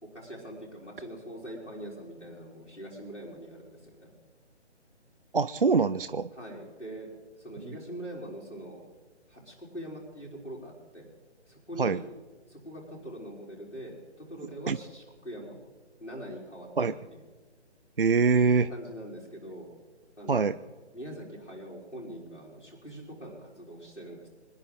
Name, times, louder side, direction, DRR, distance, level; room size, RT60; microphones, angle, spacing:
voice 1, 0.0-4.1 6.3-7.1 7.4-8.8 9.3-11.1 11.5-12.0 12.5-15.6 16.0-17.2 18.7-19.7 20.2-20.6 20.9-24.3, right 1 dB, 85° left, -4 dB, 4.6 m, -43 dB
voice 2, 5.3-6.3 11.8-12.0 14.7-14.8 16.8-16.9 18.0-18.7 20.3-20.6, right 5 dB, 50° right, 13 dB, 0.5 m, -24 dB
24.5 x 11.5 x 4.0 m, 1.4 s
figure-of-eight pair, 150°, 35 cm